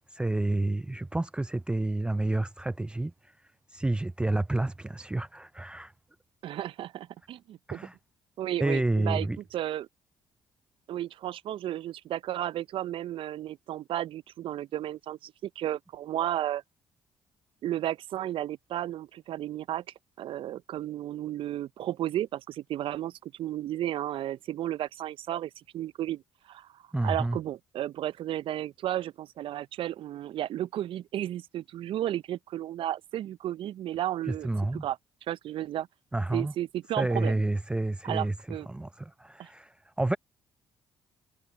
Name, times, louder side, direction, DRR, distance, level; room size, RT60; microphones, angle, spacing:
voice 1, 0.1-3.3 3.7-5.9 7.7-7.9 8.6-9.4 26.9-27.4 34.3-34.9 36.1-36.5 37.0-40.2, right 2 dB, 10° right, 0.4 m, -29 dB
voice 2, 6.4-7.9 8.4-9.9 10.9-16.6 17.6-19.8 20.2-26.2 26.5-35.0 35.3-35.9 36.3-37.4 38.0-38.7 39.4-39.5, right 12 dB, 60° right, 0.6 m, -33 dB
hypercardioid pair, 50°, 10 cm